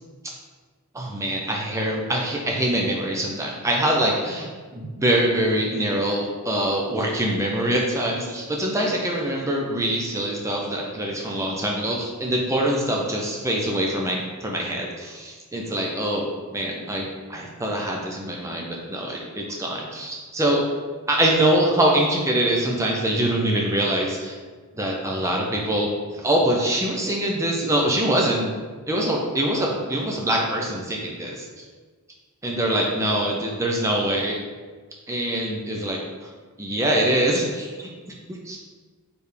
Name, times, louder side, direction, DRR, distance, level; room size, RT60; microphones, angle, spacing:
voice 1, 0.9-20.6 21.1-24.4 24.8-25.9 26.2-28.5 28.9-31.5 32.4-34.4 35.1-36.0 36.6-38.2 38.5-38.6, right 1 dB, 15° right, -1 dB, 0.4 m, -24 dB
4.6 x 3.3 x 3.2 m, 1.4 s
head